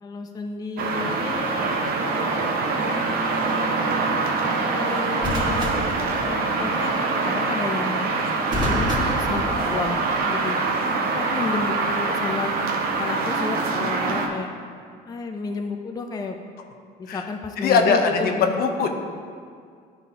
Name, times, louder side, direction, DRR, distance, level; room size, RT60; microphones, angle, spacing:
voice 1, 0.0-1.7 2.0-2.5 3.3-3.7 4.6-5.8 6.1-8.1 8.6-10.6 11.1-12.5 12.9-14.5 15.1-16.4 17.0-18.6, left 4 dB, 20° left, 4 dB, 0.4 m, -32 dB
sound 1, 0.8-14.3, right 3 dB, 60° right, 0.8 m, -24 dB
sound 2, 1.4-1.7 5.2-6.7 8.5-10.2 11.4-11.7, left 1 dB, 25° right, 1.5 m, -30 dB
voice 2, 17.6-18.9, left 5 dB, 65° left, 4 dB, 0.7 m, -20 dB
11.0 x 4.0 x 2.8 m, 2.1 s
cardioid pair, 110°, 17 cm